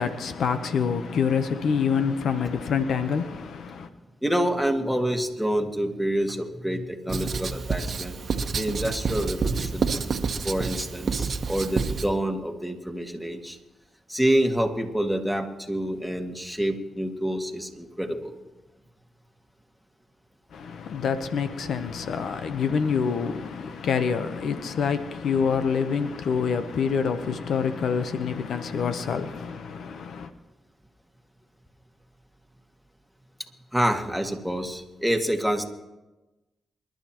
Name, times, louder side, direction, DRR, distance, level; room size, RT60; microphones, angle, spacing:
voice 1, 0.0-3.9 20.5-30.3, left 6 dB, 80° left, 0.8 m, -26 dB
voice 2, 4.2-8.2 8.5-9.9 10.4-13.6 14.1-18.4 33.7-35.6, equal, 5° left, 2.0 m, -27 dB
Writing, 7.1-12.1, right 5 dB, 60° right, 1.1 m, -28 dB
27.5 x 12.0 x 3.0 m
supercardioid pair, 55°, 0 cm